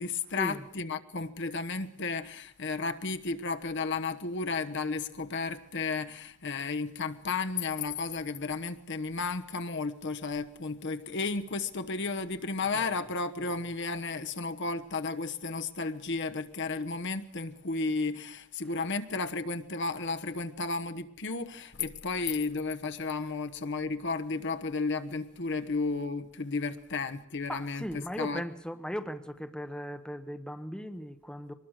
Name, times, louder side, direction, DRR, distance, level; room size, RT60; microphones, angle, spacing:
voice 1, 0.0-28.4, left 4 dB, 55° left, 1.1 m, -33 dB
voice 2, 27.5-31.5, equal, 5° left, 1.0 m, -38 dB
24.0 x 20.0 x 6.5 m
head